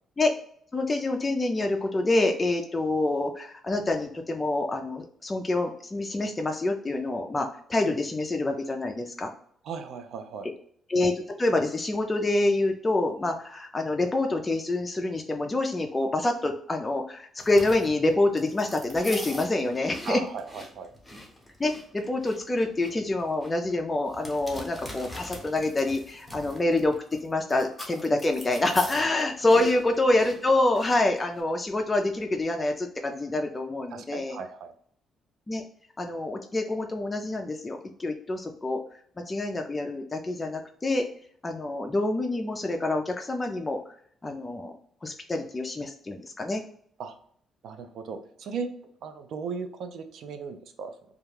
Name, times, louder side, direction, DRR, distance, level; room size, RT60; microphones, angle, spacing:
voice 1, 0.7-9.3 10.9-20.2 21.6-27.0 27.2-34.4 35.5-35.6 36.0-38.8 39.3-41.1 41.4-43.8 44.2-44.7 45.0-46.6, left 2 dB, 20° left, 3 dB, 0.3 m, -26 dB
voice 2, 9.6-10.5 20.0-20.9 29.5-29.7 33.9-34.7 47.0-47.1 47.6-48.7 49.0-50.9, right 5 dB, 70° right, 8 dB, 0.4 m, -36 dB
sound 1, 17.4-31.4, left 1 dB, 5° left, 0.8 m, -42 dB
2.3 x 2.2 x 3.1 m, 0.63 s
cardioid pair, 90°, 0 cm